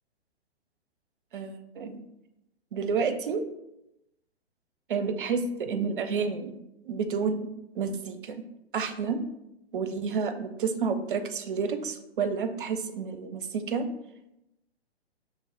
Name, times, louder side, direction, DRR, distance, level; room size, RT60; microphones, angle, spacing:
voice 1, 1.3-2.0 2.7-3.4 4.9-6.5 6.8-7.5 7.7-8.4 8.7-9.2 9.7-13.9, right 5 dB, 50° right, 9 dB, 0.5 m, -30 dB
5.3 x 3.2 x 2.4 m, 0.87 s
figure-of-eight pair, 120°, 33 cm